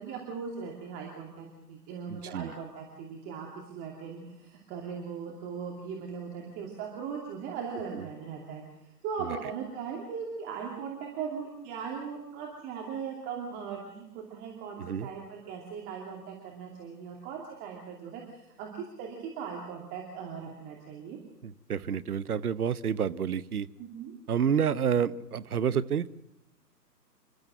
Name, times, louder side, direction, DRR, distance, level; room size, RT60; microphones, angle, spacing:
voice 1, 0.0-8.6 9.0-21.2 23.8-24.1, right 6 dB, 20° right, -1 dB, 2.7 m, -39 dB
voice 2, 2.1-2.5 7.9-8.0 14.8-15.1 21.4-23.7 24.3-26.1, right 8 dB, 65° right, 16 dB, 1.0 m, -29 dB
27.5 x 12.5 x 7.8 m, 0.90 s
figure-of-eight pair, 135°, 49 cm